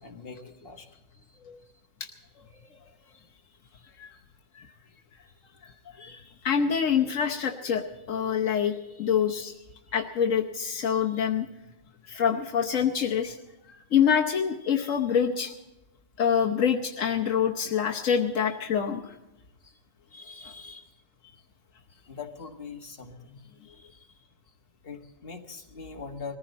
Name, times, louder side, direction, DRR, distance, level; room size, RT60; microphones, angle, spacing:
voice 1, 0.0-0.9 19.6-19.7 20.1-20.8 22.1-24.0 24.8-26.4, left 5 dB, 50° left, 2 dB, 1.9 m, -42 dB
voice 2, 5.6-9.5 9.9-11.5 12.1-13.4 13.9-15.5 16.2-19.1, left 7 dB, 80° left, 2 dB, 1.3 m, -26 dB
21.0 x 15.0 x 4.2 m, 0.97 s
omnidirectional pair, 1.3 m